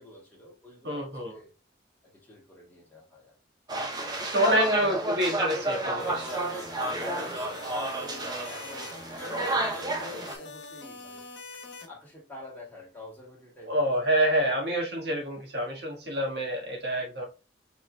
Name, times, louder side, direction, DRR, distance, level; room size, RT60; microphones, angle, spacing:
voice 1, 0.0-1.5 2.0-3.4 4.2-5.2 6.9-8.9 9.2-11.3 11.9-14.1 14.4-14.6, left 2 dB, 10° left, 2.3 m, -46 dB
voice 2, 0.8-1.4 4.3-6.4 13.7-17.3, right 1 dB, 60° right, 1.6 m, -27 dB
sound 1, 3.7-10.3, right 1 dB, 20° right, 0.7 m, -31 dB
sound 2, 6.0-11.9, left 3 dB, 75° left, 1.1 m, -44 dB
5.3 x 4.1 x 2.2 m
head